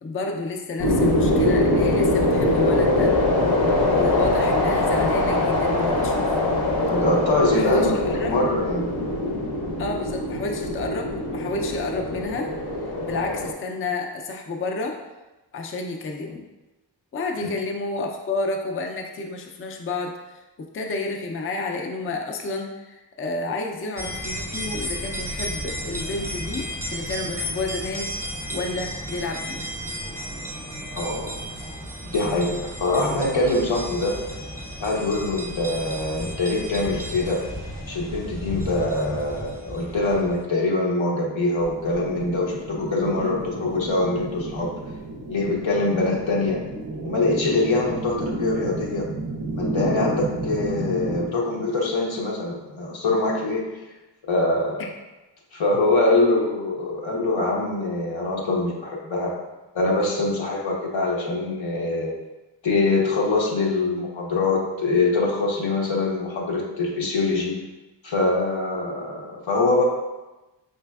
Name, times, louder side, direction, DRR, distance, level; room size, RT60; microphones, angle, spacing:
voice 1, 0.0-3.1 3.9-6.3 7.5-7.9 8.2-8.4 9.8-12.5 12.8-15.0 15.5-16.4 17.1-28.1 28.5-29.7, left 3 dB, 30° left, 2 dB, 0.4 m, -30 dB
sound 1, 0.8-13.5, left 1 dB, 55° left, 0.7 m, -22 dB
voice 2, 6.9-8.9 17.4-17.5 30.9-31.4 32.0-34.2 34.8-37.4 37.9-44.7 45.3-46.6 47.0-49.1 49.5-53.6 54.3-54.8 55.5-59.3 59.7-62.1 62.6-67.6 68.0-69.8, left 2 dB, 85° left, -2 dB, 0.9 m, -24 dB
sound 2, 24.0-40.4, equal, 5° right, 0.8 m, -33 dB
sound 3, 41.6-51.3, right 2 dB, 35° right, 0.4 m, -32 dB
4.2 x 3.2 x 2.3 m, 1.1 s
wide cardioid pair, 75°, 45 cm